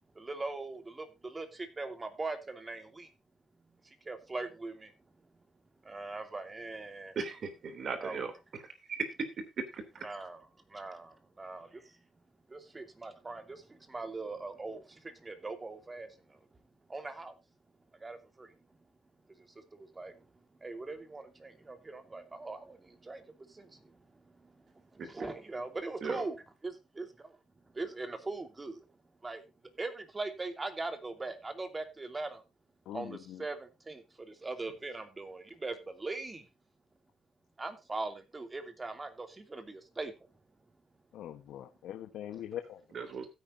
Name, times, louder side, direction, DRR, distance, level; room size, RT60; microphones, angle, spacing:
voice 1, 0.1-3.1 3.8-4.9 5.8-7.2 8.0-8.2 10.0-10.4 10.7-12.0 12.5-16.4 16.9-17.3 18.0-18.5 19.4-20.2 20.6-24.0 24.3-24.6 24.9-27.4 27.7-28.9 29.2-29.4 29.8-32.4 32.9-36.5 37.6-40.1, right 3 dB, 25° right, 2.8 m, -41 dB
voice 2, 7.1-10.1 25.0-25.3 26.0-26.2 42.9-43.3, right 5 dB, 55° right, 3.1 m, -38 dB
voice 3, 32.8-33.5 41.1-42.8, left 11 dB, 85° left, 1.1 m, -42 dB
15.5 x 9.6 x 2.7 m
cardioid pair, 90°, 0 cm